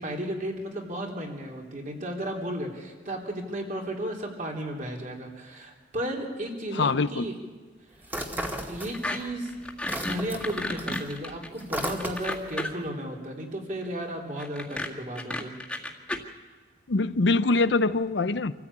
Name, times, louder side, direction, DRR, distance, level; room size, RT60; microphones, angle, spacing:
voice 1, 0.0-7.4 8.7-9.5 10.0-15.5, right 1 dB, 45° right, 0 dB, 3.6 m, -34 dB
voice 2, 6.7-7.2 16.9-18.5, left 3 dB, 75° left, 13 dB, 0.7 m, -24 dB
sound 1, 8.0-9.3 9.6-12.5, right 1 dB, 10° right, 2.1 m, -35 dB
sound 2, 8.9-9.2 9.5-12.9 14.4-16.2, left 1 dB, 5° left, 2.0 m, -32 dB
26.0 x 14.5 x 8.7 m, 1.4 s
head